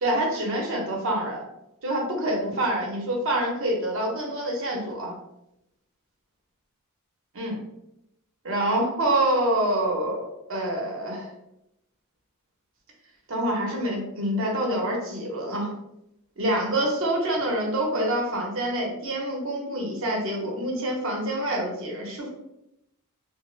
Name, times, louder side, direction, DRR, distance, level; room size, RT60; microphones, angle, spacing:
voice 1, 0.0-1.4 1.8-5.2 7.3-7.6 8.4-10.2 10.5-11.3 13.3-15.7 16.4-22.3, right 1 dB, 60° right, 0 dB, 0.8 m, -26 dB
2.9 x 2.0 x 3.1 m, 0.85 s
head